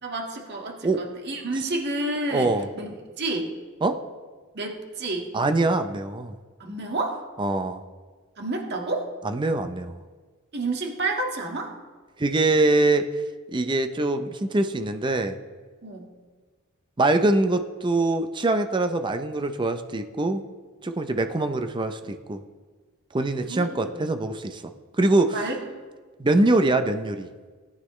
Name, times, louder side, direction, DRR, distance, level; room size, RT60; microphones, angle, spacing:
voice 1, 0.0-3.5 4.5-5.3 6.6-7.2 8.4-9.1 10.5-11.7 15.8-16.1 23.4-23.7 23.9-24.1 25.3-25.6 26.4-26.7, right 2 dB, 55° right, 1 dB, 1.7 m, -30 dB
voice 2, 2.3-2.7 3.8-4.0 5.3-6.3 7.4-7.8 9.2-9.9 12.2-13.0 13.5-15.4 17.0-20.4 20.8-22.4 23.1-24.6 25.0-25.4 26.2-27.3, right 2 dB, 25° right, 8 dB, 0.5 m, -23 dB
17.5 x 9.8 x 3.1 m, 1.4 s
head